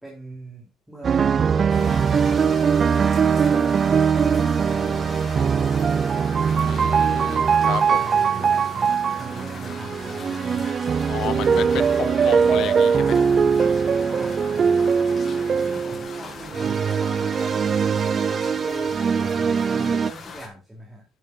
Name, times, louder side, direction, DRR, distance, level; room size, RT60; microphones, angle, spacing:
voice 1, 0.0-2.6 3.3-6.0 7.9-10.7 11.3-12.5 13.9-14.8 15.7-17.3 18.5-21.0, right 1 dB, 5° right, 2.9 m, -41 dB
sound 1, 1.0-20.1, right 6 dB, 30° right, 0.4 m, -21 dB
sound 2, 1.7-20.5, left 5 dB, 35° left, 2.2 m, -40 dB
voice 2, 6.5-8.1 11.1-11.7 12.0-13.3, left 12 dB, 60° left, 0.5 m, -32 dB
10.0 x 9.0 x 2.5 m
cardioid pair, 145°, 0 cm